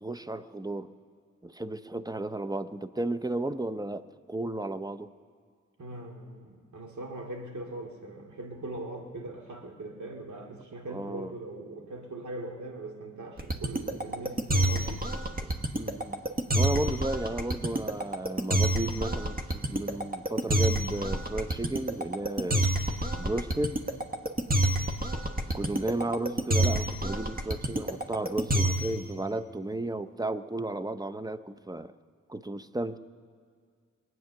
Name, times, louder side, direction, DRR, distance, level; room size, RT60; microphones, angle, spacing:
voice 1, 0.0-0.9 1.4-5.1 10.9-11.3 15.4-16.2 16.5-22.7 23.2-23.8 25.5-31.9 32.3-33.0, right 2 dB, 10° right, 12 dB, 0.6 m, -33 dB
voice 2, 5.8-15.1, right 2 dB, 65° right, 1 dB, 2.5 m, -41 dB
sound 1, 13.4-29.0, right 1 dB, 30° right, 1.3 m, -27 dB
21.0 x 9.3 x 6.7 m, 2.1 s
cardioid pair, 45°, 31 cm